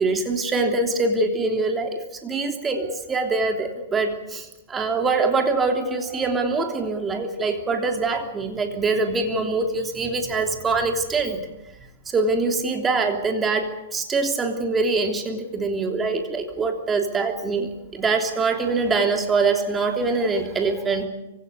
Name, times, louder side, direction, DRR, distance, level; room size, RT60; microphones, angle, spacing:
voice 1, 0.0-11.4 12.1-21.1, right 3 dB, 15° right, 4 dB, 3.2 m, -24 dB
25.0 x 16.5 x 8.3 m, 0.95 s
hypercardioid pair, 140°, 0 cm